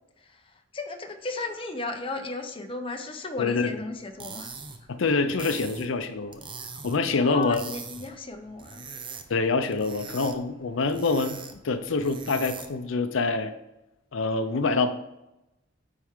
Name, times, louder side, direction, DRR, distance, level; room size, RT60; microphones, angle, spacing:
voice 1, 0.2-4.5 7.2-8.9, left 3 dB, 25° left, 4 dB, 0.8 m, -35 dB
voice 2, 3.4-3.7 4.9-6.4 6.8-7.6 9.3-11.4 11.6-13.5 14.1-14.9, left 3 dB, 75° left, 9 dB, 0.6 m, -25 dB
sound 1, 4.0-12.9, right 5 dB, 25° right, 0.6 m, -42 dB
9.4 x 4.5 x 3.7 m, 0.92 s
head